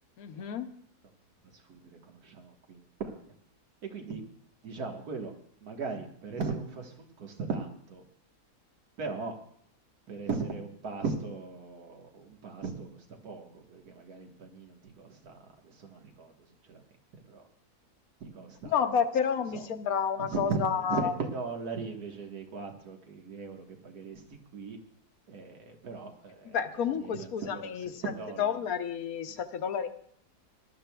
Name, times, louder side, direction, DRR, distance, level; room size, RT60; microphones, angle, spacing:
voice 1, 0.2-0.7 18.7-21.1 26.4-28.0 28.4-29.9, left 7 dB, 65° left, 9 dB, 1.2 m, -30 dB
voice 2, 1.4-3.3 3.9-4.2 4.6-5.3 5.6-8.0 9.0-9.4 10.1-16.8 17.3-17.4 18.2-19.7 20.2-24.3 24.5-24.8 25.3-28.6, right 4 dB, 70° right, 3 dB, 1.9 m, -38 dB
22.0 x 12.0 x 2.3 m, 0.65 s
omnidirectional pair, 1.7 m